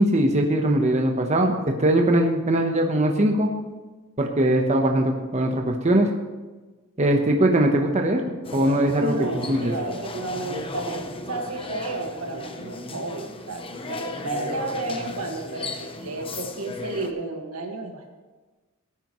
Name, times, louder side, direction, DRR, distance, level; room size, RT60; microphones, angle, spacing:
voice 1, 0.0-3.5 4.2-6.1 7.0-8.2 8.5-9.7, right 1 dB, 30° right, 3 dB, 1.0 m, -21 dB
sound 1, 8.4-17.1, left 2 dB, 25° left, 0.8 m, -36 dB
voice 2, 9.0-18.1, right 2 dB, 90° right, 2 dB, 1.8 m, -32 dB
18.0 x 9.3 x 3.1 m, 1.3 s
head